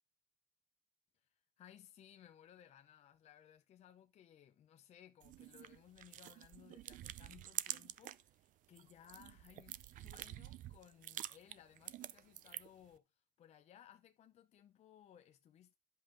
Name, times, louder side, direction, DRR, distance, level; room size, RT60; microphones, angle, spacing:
voice 1, 1.1-15.7, left 10 dB, 50° left, 0.7 m, -62 dB
sound 1, 5.2-8.3 8.6-12.9, right 13 dB, 65° right, 0.5 m, -48 dB
12.5 x 5.5 x 3.9 m
cardioid pair, 145°, 15 cm